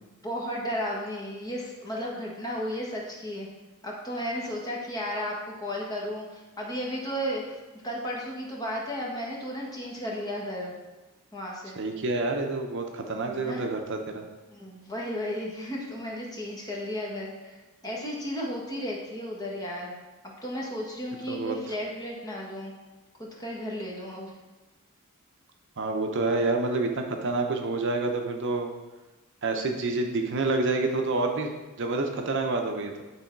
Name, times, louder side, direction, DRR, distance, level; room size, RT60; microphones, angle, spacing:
voice 1, 0.2-3.5 3.8-7.6 7.8-10.7 11.3-11.8 13.3-13.7 14.5-19.9 20.2-22.7 23.2-24.3, equal, 20° left, -3 dB, 1.4 m, -34 dB
voice 2, 11.8-14.2 21.3-21.6 25.8-28.7 29.4-31.5 31.8-33.0, right 3 dB, 55° right, 3 dB, 0.7 m, -28 dB
9.7 x 3.8 x 4.6 m, 1.1 s
head